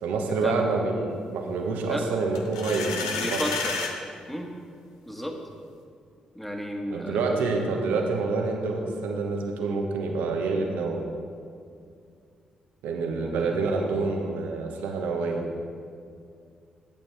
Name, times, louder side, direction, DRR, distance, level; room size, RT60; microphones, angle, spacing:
voice 1, 0.0-3.4 6.9-11.1 12.8-15.4, right 3 dB, 75° right, 2 dB, 1.2 m, -27 dB
sound 1, 2.3-3.9, left 4 dB, 85° left, 0.7 m, -30 dB
voice 2, 3.2-3.7 4.3-4.5 5.1-5.3 6.3-7.4 13.2-13.5, equal, 5° left, 2 dB, 1.7 m, -33 dB
12.0 x 8.8 x 3.4 m, 2.3 s
hypercardioid pair, 40°, 3 cm